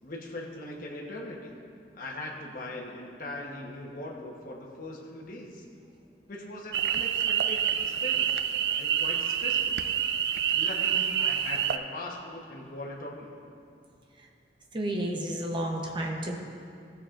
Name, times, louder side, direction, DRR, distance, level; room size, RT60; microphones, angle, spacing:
voice 1, 0.0-1.6 1.9-5.6 6.3-8.3 8.8-9.7 10.5-13.4, left 1 dB, 50° left, -2 dB, 1.1 m, -40 dB
sound 1, 6.7-11.8, right 9 dB, 65° right, 0.4 m, -27 dB
voice 2, 14.7-16.4, right 1 dB, 25° right, 1 dB, 0.9 m, -31 dB
16.0 x 6.8 x 2.5 m, 2.5 s
head